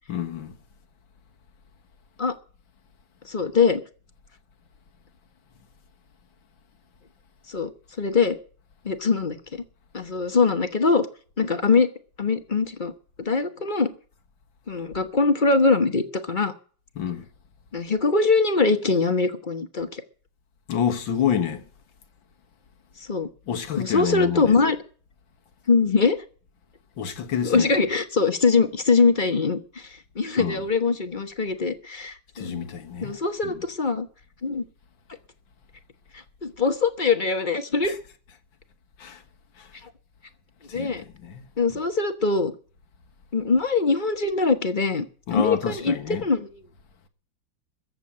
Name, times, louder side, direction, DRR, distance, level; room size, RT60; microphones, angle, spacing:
voice 1, 0.1-0.6 17.0-17.3 20.7-21.7 23.5-24.6 27.0-27.7 30.4-30.6 32.4-33.2 33.4-33.6 37.8-38.0 39.0-39.2 39.6-39.7 40.7-41.8 45.3-46.3, left 8 dB, 80° left, 2.2 m, -28 dB
voice 2, 3.2-3.8 7.5-7.7 8.0-8.4 8.8-9.6 9.9-11.1 11.4-11.9 12.2-12.9 13.2-13.9 14.7-16.5 17.7-20.0 23.1-23.3 23.8-24.8 25.7-26.2 27.4-32.5 33.0-34.1 34.4-34.6 36.1-37.9 40.7-41.0 41.6-42.5 43.3-45.1 45.3-46.5, left 4 dB, 30° left, 1.2 m, -22 dB
14.5 x 7.8 x 8.7 m
omnidirectional pair, 2.1 m